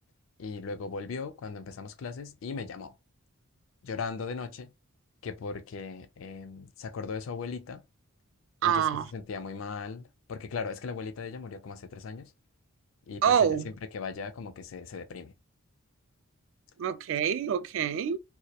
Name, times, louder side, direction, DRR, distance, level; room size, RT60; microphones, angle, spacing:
voice 1, 0.4-2.9 3.8-4.7 5.2-7.8 8.6-12.3 13.1-15.3, left 5 dB, 65° left, 0.4 m, -38 dB
voice 2, 8.6-9.1 13.2-13.7 16.8-18.2, right 8 dB, 65° right, 0.3 m, -26 dB
2.3 x 2.0 x 2.7 m
head